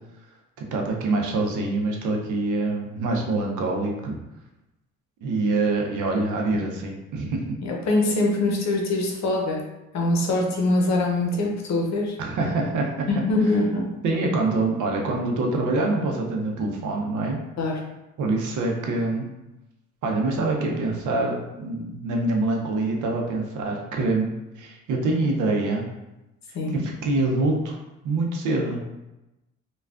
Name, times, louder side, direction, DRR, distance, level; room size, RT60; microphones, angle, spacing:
voice 1, 0.6-4.2 5.2-7.4 12.2-13.1 14.0-17.4 18.2-19.3 20.0-24.3 24.6-25.9 26.7-27.8 28.0-28.8, right 2 dB, 80° right, 1 dB, 0.7 m, -25 dB
voice 2, 7.6-9.6 9.9-12.2 13.1-13.9 17.6-17.8 26.5-26.8, left 2 dB, 65° left, 0 dB, 0.7 m, -23 dB
3.3 x 2.3 x 2.4 m, 0.98 s
cardioid pair, 90°, 30 cm